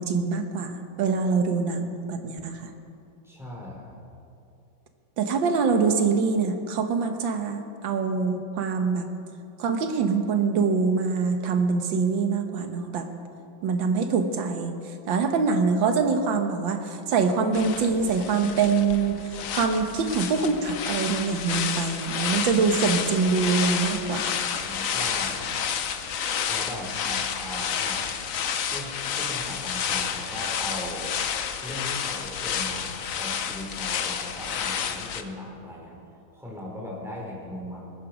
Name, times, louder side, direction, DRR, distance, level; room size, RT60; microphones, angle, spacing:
voice 1, 0.0-2.7 5.2-9.1 9.6-13.1 13.6-14.7 15.1-19.2 19.5-24.3, right 5 dB, 75° right, 6 dB, 1.8 m, -24 dB
voice 2, 3.2-3.9 24.6-25.5 26.5-28.1 28.7-31.2 31.6-36.0 36.3-37.9, left 1 dB, ahead, -3 dB, 3.5 m, -38 dB
sound 1, 17.5-35.2, left 8 dB, 60° left, 1.0 m, -30 dB
20.5 x 10.0 x 6.0 m, 2.6 s
omnidirectional pair, 2.1 m